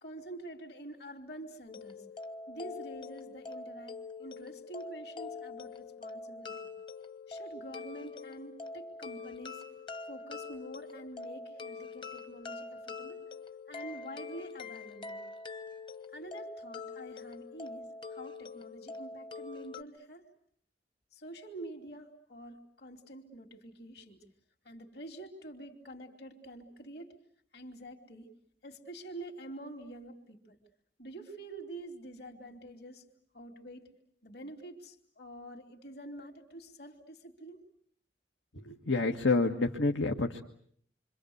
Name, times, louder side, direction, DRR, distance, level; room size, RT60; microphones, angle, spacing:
voice 1, 0.0-2.0 2.5-6.7 7.3-9.6 10.1-13.2 13.7-15.2 16.1-20.2 21.1-24.2 24.6-27.2 27.5-28.3 28.6-30.6 31.0-33.1 33.3-33.9 34.2-37.6, right 1 dB, 55° left, 1 dB, 3.2 m, -47 dB
sound 1, 1.7-19.8, left 4 dB, 25° left, 1.1 m, -44 dB
voice 2, 38.5-40.4, left 3 dB, 85° left, 3 dB, 1.7 m, -28 dB
28.0 x 25.5 x 8.0 m, 0.65 s
head